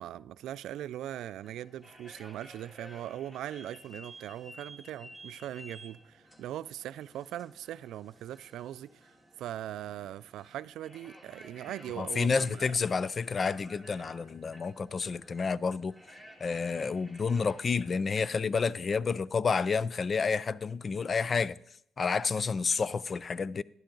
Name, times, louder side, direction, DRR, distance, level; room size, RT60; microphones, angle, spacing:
voice 1, 0.0-9.1 9.4-12.7, right 12 dB, 80° right, 0.3 m, -40 dB
sound 1, 1.4-18.0, equal, 15° left, 2.1 m, -54 dB
voice 2, 12.0-16.0 16.4-21.6 22.0-23.6, left 5 dB, 40° left, 0.3 m, -30 dB
11.5 x 10.5 x 3.9 m
cardioid pair, 90°, 0 cm